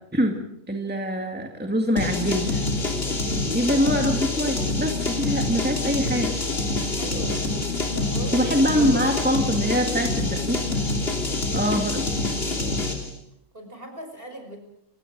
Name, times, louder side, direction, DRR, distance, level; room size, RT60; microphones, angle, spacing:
voice 1, 0.7-2.6 3.5-6.4 8.3-10.6 11.5-12.1, equal, 5° right, 2 dB, 2.2 m, -24 dB
sound 1, 2.0-13.1, left 2 dB, 45° left, 3.1 m, -26 dB
voice 2, 3.5-4.1 6.9-9.2 13.5-14.6, right 2 dB, 40° right, 4 dB, 5.8 m, -39 dB
29.0 x 17.5 x 6.1 m, 0.75 s
omnidirectional pair, 1.5 m